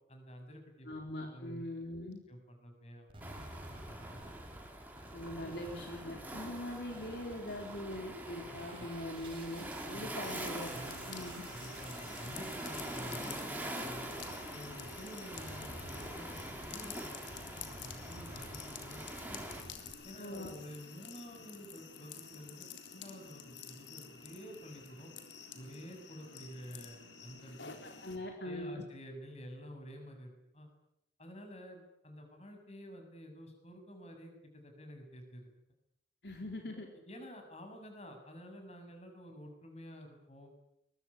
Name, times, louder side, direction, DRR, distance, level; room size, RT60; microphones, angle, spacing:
voice 1, 0.1-0.9 1.3-3.3 3.7-4.2 5.2-5.6 8.5-8.9 9.9-10.2 10.7-11.1 11.5-14.1 14.5-19.4 20.0-22.7 22.9-25.1 25.5-27.7 28.4-30.7 31.2-35.5 37.1-40.5, equal, 35° left, 5 dB, 7.2 m, -50 dB
voice 2, 0.9-2.2 5.1-11.4 20.2-20.5 27.8-28.8 36.2-36.9, left 1 dB, 65° left, 2 dB, 4.0 m, -42 dB
sound 1, 3.1-15.1 15.3-19.9, right 2 dB, 30° right, 5.2 m, -52 dB
Waves surf, 3.2-19.6, right 1 dB, 10° right, 4.3 m, -45 dB
sound 2, 10.2-28.2, left 6 dB, 80° left, 3.8 m, -50 dB
23.0 x 22.0 x 9.9 m, 0.80 s
head